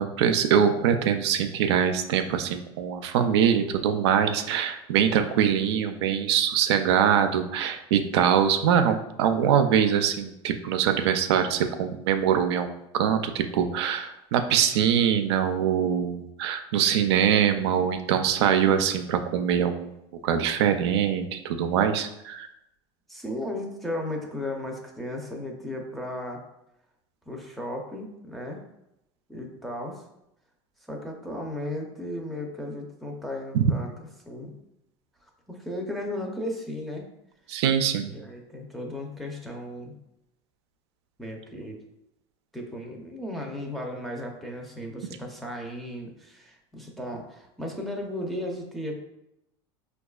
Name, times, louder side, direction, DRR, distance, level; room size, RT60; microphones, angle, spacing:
voice 1, 0.0-19.9 20.2-22.5 33.5-33.6 37.5-38.1, right 8 dB, 90° right, 7 dB, 0.4 m, -23 dB
voice 2, 23.1-26.4 27.3-28.6 29.3-30.0 30.9-34.5 35.5-37.1 38.1-40.0 41.2-41.8 42.5-48.9, left 1 dB, ahead, -1 dB, 0.6 m, -35 dB
4.6 x 2.3 x 2.3 m, 0.85 s
supercardioid pair, 130°, 14 cm